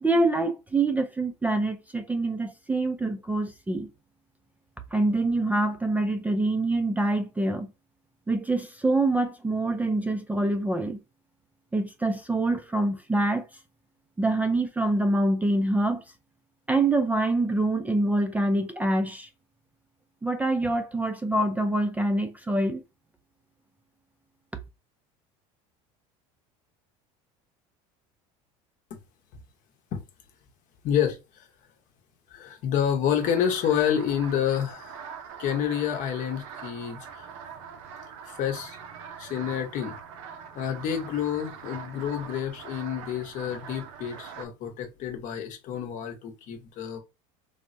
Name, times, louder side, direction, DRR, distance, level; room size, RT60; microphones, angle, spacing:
voice 1, 0.0-3.9 4.9-7.7 8.3-11.0 11.7-13.5 14.2-16.0 16.7-19.3 20.2-22.8, right 2 dB, 10° right, 0.3 m, -25 dB
voice 2, 30.8-31.5 32.3-35.0 35.4-37.3 38.3-38.8 39.2-39.9 40.5-47.0, left 9 dB, 55° left, 0.8 m, -28 dB
sound 1, 33.2-44.5, right 7 dB, 80° right, 0.6 m, -43 dB
3.3 x 2.1 x 2.5 m
supercardioid pair, 105°, 16 cm